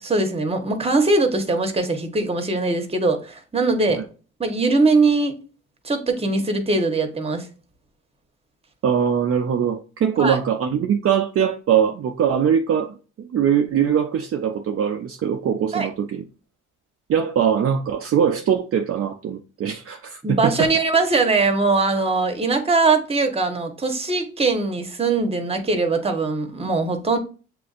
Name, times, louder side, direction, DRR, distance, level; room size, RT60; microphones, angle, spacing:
voice 1, 0.0-4.0 4.4-5.3 5.8-7.5 10.2-10.4 15.7-15.9 20.2-27.2, right 3 dB, 20° right, 1.1 m, -21 dB
voice 2, 8.8-16.2 17.1-20.7, right 8 dB, 50° right, 0.5 m, -22 dB
7.5 x 2.5 x 2.4 m
cardioid pair, 90°, 30 cm